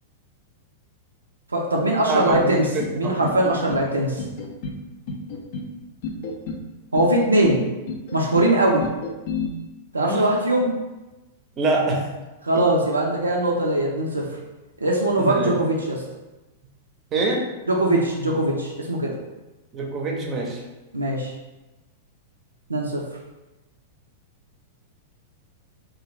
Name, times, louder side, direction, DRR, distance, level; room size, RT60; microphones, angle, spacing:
voice 1, 1.5-2.7 3.0-4.2 6.9-7.6 8.1-8.8 9.9-10.7 12.4-14.3 14.8-16.0 17.7-19.1 20.9-21.3 22.7-23.0, right 1 dB, 80° right, -2 dB, 0.4 m, -21 dB
voice 2, 2.1-3.2 10.0-10.3 11.6-12.0 15.2-15.5 17.1-17.4 19.7-20.6, right 3 dB, 30° right, 0 dB, 0.6 m, -25 dB
sound 1, 2.3-2.9 3.2-3.9 4.2-4.8 5.1-5.7 6.0-6.6 6.9-7.6 7.9-8.5 8.8-9.5, left 4 dB, 50° left, 0.4 m, -31 dB
2.5 x 2.3 x 3.1 m, 1.1 s
figure-of-eight pair, 95°, 0 cm